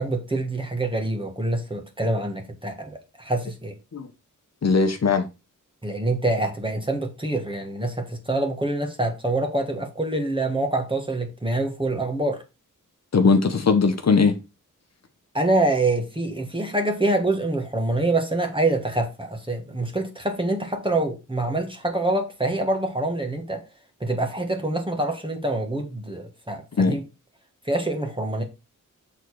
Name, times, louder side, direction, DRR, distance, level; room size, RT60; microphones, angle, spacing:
voice 1, 0.0-3.7 5.8-12.4 15.3-23.6 24.0-27.0 27.6-28.4, right 2 dB, 15° right, 1.4 m, -25 dB
voice 2, 4.6-5.3 13.1-14.4 26.8-27.0, left 4 dB, 50° left, 1.0 m, -19 dB
6.5 x 3.9 x 4.7 m
wide cardioid pair, 90°, 33 cm